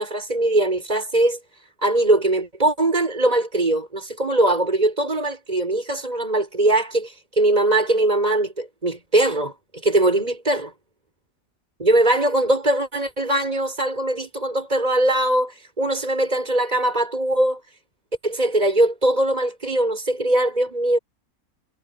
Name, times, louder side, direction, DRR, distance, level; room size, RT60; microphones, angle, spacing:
voice 1, 0.0-1.4 1.8-9.5 9.8-10.7 11.8-17.6 18.2-21.0, right 1 dB, 25° right, 6.3 m, -21 dB
omnidirectional pair, 1.5 m